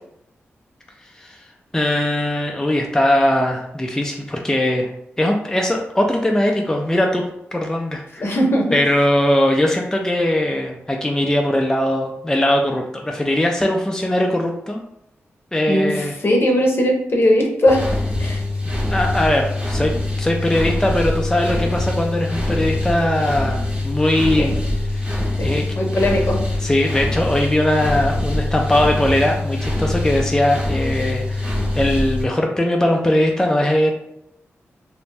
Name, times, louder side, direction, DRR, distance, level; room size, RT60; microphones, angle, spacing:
voice 1, 1.7-4.9 5.2-7.2 7.5-8.3 8.7-14.8 15.5-16.1 18.9-19.9 20.2-24.6 24.9-25.2 25.4-25.6 26.6-33.9, left 1 dB, 10° left, 1 dB, 0.4 m, -20 dB
voice 2, 8.2-8.7 15.7-17.9 18.2-18.4 24.4-24.5 25.4-26.6, equal, 55° left, 0 dB, 0.7 m, -19 dB
sound 1, 17.7-32.2, left 2 dB, 20° right, 0.8 m, -23 dB
2.6 x 2.1 x 3.2 m, 0.78 s
cardioid pair, 45°, 5 cm